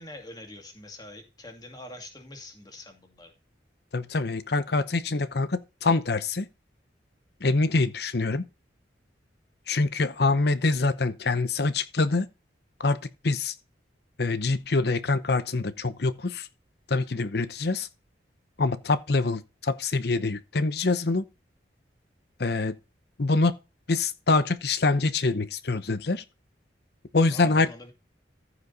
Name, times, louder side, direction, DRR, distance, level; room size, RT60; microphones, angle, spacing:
voice 1, 0.0-3.3 27.3-27.9, left 1 dB, 20° left, 2.2 m, -44 dB
voice 2, 3.9-6.5 7.4-8.4 9.7-12.3 12.8-13.5 14.2-16.5 16.9-17.9 18.6-21.2 22.4-22.8 23.2-23.5 23.9-26.2 27.1-27.7, left 3 dB, 60° left, 0.8 m, -25 dB
15.0 x 5.0 x 4.0 m
head